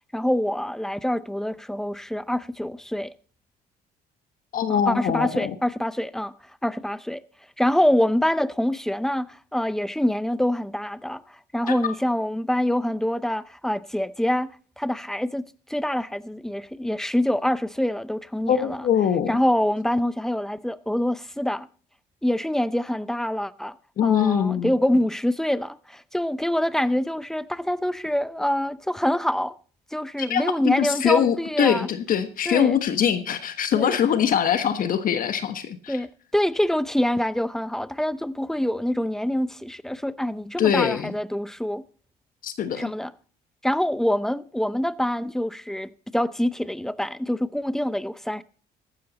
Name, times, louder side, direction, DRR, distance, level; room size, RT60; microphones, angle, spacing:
voice 1, 0.1-3.1 4.7-6.3 6.6-7.2 7.6-11.2 11.5-18.9 19.3-21.7 22.2-23.7 24.0-29.5 29.9-31.9 32.5-32.8 33.8-34.0 35.9-41.8 42.8-43.1 43.6-48.4, left 1 dB, 5° left, 0.6 m, -25 dB
voice 2, 4.5-5.5 11.7-11.8 18.5-19.4 24.0-24.7 30.2-36.0 40.6-41.1 42.4-42.9, left 8 dB, 55° left, 1.3 m, -23 dB
14.5 x 12.0 x 4.1 m
cardioid pair, 110°, 17 cm